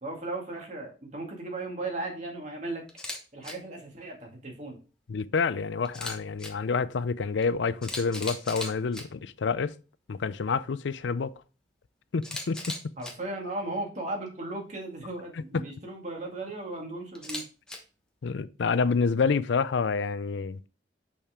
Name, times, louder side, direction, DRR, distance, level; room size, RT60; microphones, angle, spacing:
voice 1, 0.0-2.8 3.3-4.8 13.0-17.4, right 2 dB, 40° right, 2.1 m, -36 dB
Camera, 2.9-3.2 3.4-3.5 5.8-6.5 7.4-7.5 7.8-9.0 12.2-13.1 17.1-17.8, left 1 dB, 5° left, 1.1 m, -37 dB
voice 2, 5.1-9.8 10.1-11.3 12.1-12.6 15.5-15.6 18.2-20.6, left 5 dB, 85° left, 0.5 m, -28 dB
6.5 x 5.5 x 3.6 m
head